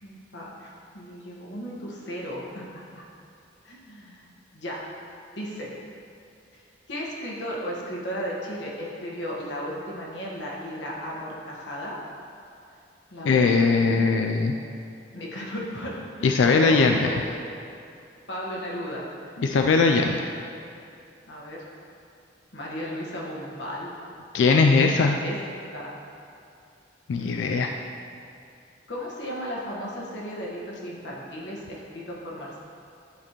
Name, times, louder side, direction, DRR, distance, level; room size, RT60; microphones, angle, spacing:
voice 1, 0.0-2.6 2.9-3.0 3.6-4.2 4.5-4.9 5.3-5.7 6.5-6.6 6.9-12.0 13.1-14.1 15.1-17.2 18.3-19.5 21.3-21.7 22.5-23.9 24.6-24.9 25.2-25.4 25.7-25.9 27.2-27.5 28.9-32.6, equal, 65° left, -4 dB, 1.3 m, -35 dB
voice 2, 13.2-14.5 16.2-17.1 19.4-20.3 24.3-25.2 27.1-27.7, left 4 dB, 80° left, 3 dB, 0.3 m, -20 dB
11.0 x 4.2 x 3.0 m, 2.5 s
head